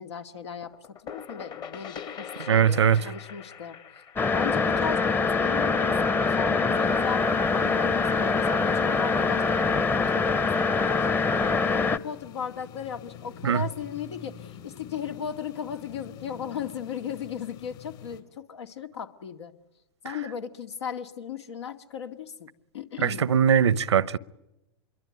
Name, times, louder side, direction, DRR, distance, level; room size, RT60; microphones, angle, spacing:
voice 1, 0.0-3.8 4.3-7.3 7.5-19.5 20.0-22.5 22.7-23.3, left 7 dB, 80° left, 2.3 m, -36 dB
sound 1, 0.6-6.2, left 7 dB, 30° left, 1.4 m, -43 dB
voice 2, 2.5-3.0 13.4-13.6 23.0-24.2, right 8 dB, 85° right, 0.9 m, -21 dB
sound 2, 4.2-12.0, left 4 dB, 15° left, 1.0 m, -24 dB
sound 3, 6.7-18.2, left 8 dB, 60° left, 5.3 m, -47 dB
27.0 x 23.0 x 9.2 m
hypercardioid pair, 110°, 14 cm